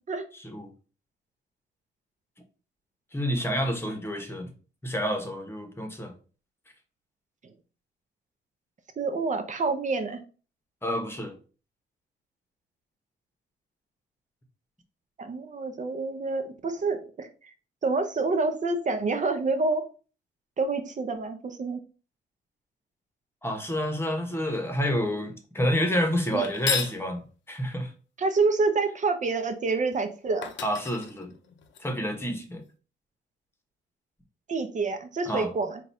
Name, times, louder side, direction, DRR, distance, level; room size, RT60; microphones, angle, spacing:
voice 1, 3.1-4.5 4.8-6.1 10.8-11.4 23.4-27.2 27.5-27.9 30.6-31.3 31.8-32.6 35.3-35.5, equal, 10° left, 1.1 m, -28 dB
voice 2, 9.0-10.2 15.2-17.5 17.8-19.8 20.6-21.8 26.3-26.4 28.2-30.5 34.5-35.8, right 3 dB, 40° right, 0.8 m, -27 dB
sound 1, 26.4-27.0 29.9-30.0 30.4-31.8, left 8 dB, 70° left, 0.7 m, -32 dB
3.9 x 2.5 x 4.3 m
cardioid pair, 90°, 20 cm